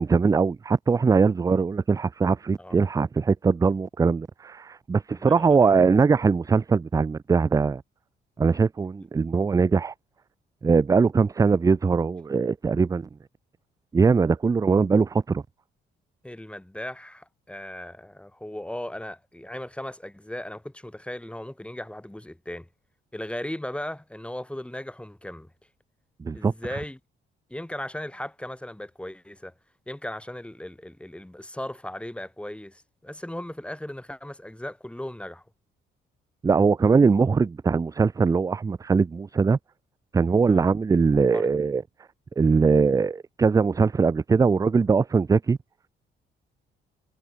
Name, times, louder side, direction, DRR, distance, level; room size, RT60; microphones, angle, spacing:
voice 1, 0.0-7.8 8.4-9.9 10.6-13.1 13.9-15.4 26.2-26.8 36.4-39.6 40.1-41.8 42.4-45.6, right 5 dB, 15° right, 0.3 m, -21 dB
voice 2, 5.2-5.6 16.2-22.7 23.1-25.5 26.3-27.0 27.5-29.5 29.9-35.4 40.5-40.7 41.3-41.5, left 1 dB, 5° left, 3.2 m, -37 dB
cardioid pair, 90°, 20 cm